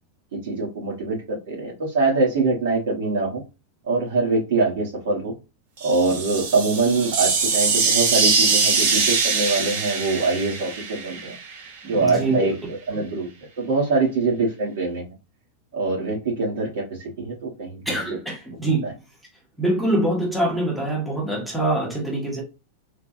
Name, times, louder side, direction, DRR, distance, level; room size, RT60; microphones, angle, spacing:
voice 1, 0.3-3.4 3.9-5.3 5.8-11.3 11.8-13.3 13.6-15.0 15.7-17.8 18.1-18.2 18.8-18.9, right 3 dB, 70° right, 1.2 m, -24 dB
sound 1, 5.8-11.7, right 5 dB, 45° right, 0.7 m, -22 dB
voice 2, 11.9-12.3 17.9-18.9 19.6-22.4, right 1 dB, ahead, 0.7 m, -24 dB
3.3 x 2.1 x 2.6 m
supercardioid pair, 180°, 0 cm